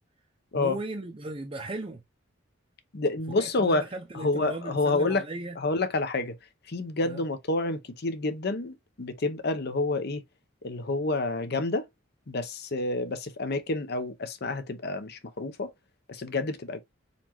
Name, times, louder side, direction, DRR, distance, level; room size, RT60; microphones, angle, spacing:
voice 1, 0.5-2.0 3.3-5.6 7.0-7.2, right 2 dB, 30° right, 0.6 m, -37 dB
voice 2, 2.9-3.9 4.1-5.2 5.6-6.3 6.7-10.2 10.6-11.9 12.3-15.7 16.1-16.8, left 2 dB, 55° left, 0.7 m, -28 dB
4.3 x 4.1 x 3.0 m
head